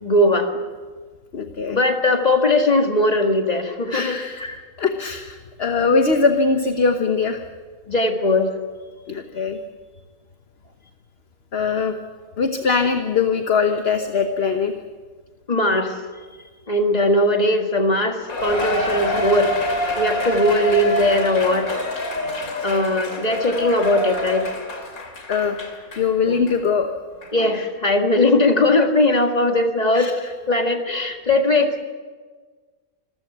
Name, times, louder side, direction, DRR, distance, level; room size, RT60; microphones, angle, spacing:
voice 1, 0.0-0.5 1.7-4.6 7.9-8.5 15.5-15.9 16.7-19.5 20.0-21.7 22.6-24.5 26.3-26.4 27.3-30.1 30.5-31.8, left 1 dB, 30° left, 4 dB, 2.0 m, -19 dB
voice 2, 1.3-1.8 3.9-4.4 4.8-7.4 9.1-9.6 11.5-11.9 12.4-14.7 16.3-16.4 25.3-25.6 26.0-26.9 29.9-30.3, left 5 dB, 45° left, 6 dB, 1.3 m, -21 dB
Cheering, 18.3-26.1 26.5-26.6 27.2-27.3, left 1 dB, 80° left, 3.1 m, -26 dB
26.5 x 15.0 x 8.0 m, 1.5 s
omnidirectional pair, 1.5 m